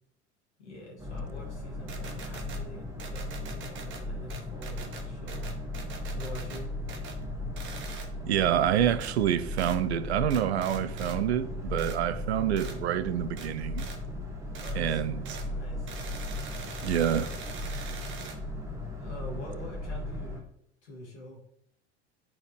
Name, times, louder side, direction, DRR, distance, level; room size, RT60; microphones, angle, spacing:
voice 1, 0.6-5.5 6.1-6.7 14.6-15.0 15.3-15.9 19.0-20.4 20.8-21.4, left 1 dB, 75° left, 2.7 m, -45 dB
Boat Water vehicle, 1.0-20.4, left 1 dB, 10° right, 1.6 m, -37 dB
sound 1, 1.9-2.6 3.0-4.0 4.3-6.6 6.9-7.2 7.6-8.1 9.0-9.1 9.6-9.8 10.3-11.2 11.8-12.0 12.6-12.8 13.4-13.5 13.8-14.0 14.5-14.8 15.2-15.5 15.9-18.4, right 5 dB, 35° right, 1.1 m, -43 dB
voice 2, 8.3-13.9 14.8-15.2 16.8-17.3 17.7-17.9, right 10 dB, 70° right, 0.6 m, -27 dB
9.8 x 4.4 x 3.2 m
figure-of-eight pair, 75°, 35 cm